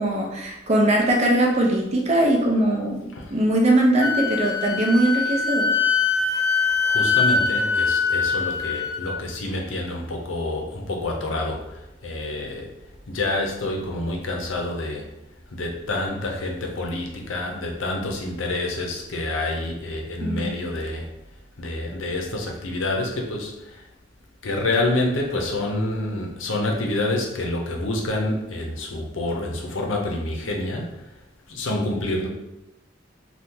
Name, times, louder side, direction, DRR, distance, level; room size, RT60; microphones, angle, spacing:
voice 1, 0.0-3.0 3.3-5.7 20.2-20.6, right 1 dB, 35° right, 0 dB, 0.5 m, -21 dB
Wind instrument woodwind instrument, 4.0-9.2, left 5 dB, 20° left, 0.4 m, -23 dB
voice 2, 6.8-12.7 13.1-15.1 15.5-21.1 21.6-23.9 24.4-31.1 31.5-32.3, left 2 dB, 85° left, 1 dB, 0.7 m, -27 dB
2.8 x 2.3 x 3.6 m, 0.93 s
head